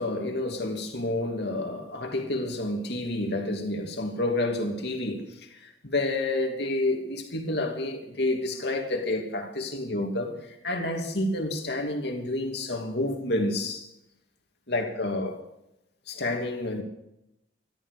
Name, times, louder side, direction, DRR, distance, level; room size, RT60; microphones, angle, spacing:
voice 1, 0.0-13.9 14.7-15.4 16.1-16.8, left 2 dB, 65° left, 2.8 m, -29 dB
14.5 x 14.0 x 6.8 m
head